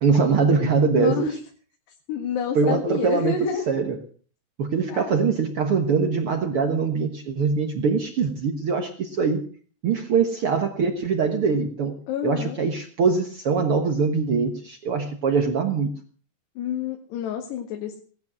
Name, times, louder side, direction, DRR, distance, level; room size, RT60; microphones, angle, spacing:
voice 1, 0.0-1.4 2.5-4.0 4.6-9.4 9.8-12.0 12.2-15.9, right 5 dB, 85° right, 5 dB, 1.2 m, -23 dB
voice 2, 1.0-1.3 2.1-3.7 4.9-5.3 12.1-12.6 16.6-18.0, left 8 dB, 80° left, 3 dB, 3.9 m, -29 dB
18.0 x 12.0 x 6.1 m, 0.43 s
omnidirectional pair, 4.7 m